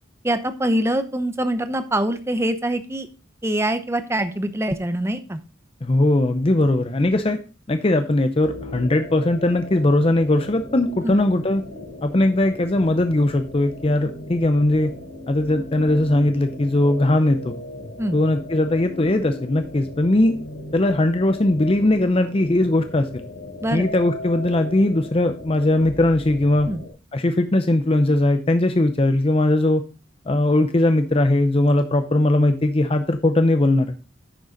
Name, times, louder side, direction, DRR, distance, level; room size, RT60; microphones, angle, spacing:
voice 1, 0.2-3.1 3.4-5.4 11.0-11.1 18.0-18.2 23.6-23.8 26.7-26.8, right 1 dB, 15° right, 10 dB, 0.8 m, -24 dB
voice 2, 5.8-7.4 7.7-11.6 12.0-14.9 15.3-17.5 18.1-20.3 20.7-23.2 23.7-26.7 27.1-29.8 30.3-33.9, left 1 dB, 30° left, 8 dB, 0.6 m, -19 dB
sound 1, 8.4-26.9, left 1 dB, 80° left, 3.6 m, -37 dB
10.0 x 6.8 x 3.8 m, 0.32 s
head